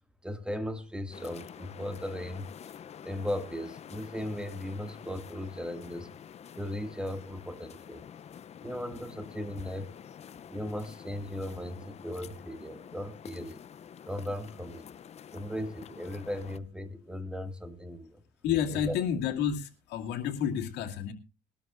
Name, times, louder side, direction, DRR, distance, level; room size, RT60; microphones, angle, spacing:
voice 1, 0.2-2.5 3.0-6.1 6.6-8.0 8.6-9.9 10.5-13.6 14.1-14.9 15.3-18.2 18.7-19.0, left 1 dB, 5° right, 2.0 m, -37 dB
sound 1, 1.1-16.6, left 8 dB, 40° left, 0.6 m, -48 dB
voice 2, 18.4-21.1, left 8 dB, 85° left, 2.6 m, -30 dB
21.5 x 13.0 x 2.5 m
cardioid pair, 110°, 17 cm